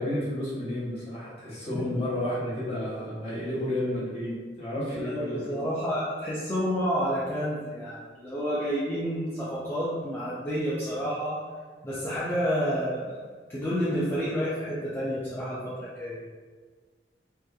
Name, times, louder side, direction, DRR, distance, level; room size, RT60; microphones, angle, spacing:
voice 1, 0.0-4.3 4.6-5.5, left 1 dB, 35° left, -7 dB, 0.8 m, -31 dB
voice 2, 4.8-11.4 11.8-13.2 13.5-16.2, equal, 15° left, -9 dB, 0.3 m, -29 dB
2.8 x 2.2 x 2.2 m, 1.5 s
head